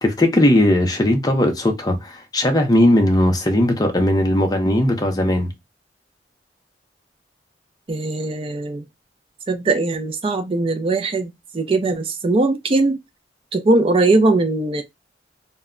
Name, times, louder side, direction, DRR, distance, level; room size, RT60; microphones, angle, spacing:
voice 1, 0.0-5.5, left 1 dB, 20° left, 0.5 m, -18 dB
voice 2, 7.9-8.8 9.5-13.0 13.5-14.8, right 2 dB, 30° right, 0.4 m, -20 dB
2.1 x 2.1 x 3.5 m
head